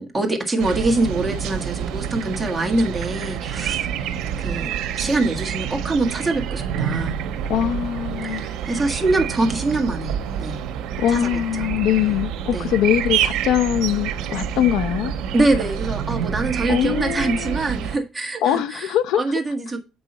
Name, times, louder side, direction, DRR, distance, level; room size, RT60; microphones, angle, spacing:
voice 1, 0.0-3.9 4.4-4.7 5.0-7.2 8.2-10.6 11.1-11.3 11.6-11.7 12.5-12.7 15.3-19.8, right 2 dB, 15° right, 1.7 m, -24 dB
sound 1, 0.6-18.0, right 9 dB, 80° right, 1.0 m, -27 dB
voice 2, 7.5-8.4 11.0-15.1 16.7-17.6 18.4-19.2, left 11 dB, 80° left, 0.6 m, -22 dB
8.2 x 5.5 x 4.3 m
cardioid pair, 125°, 0 cm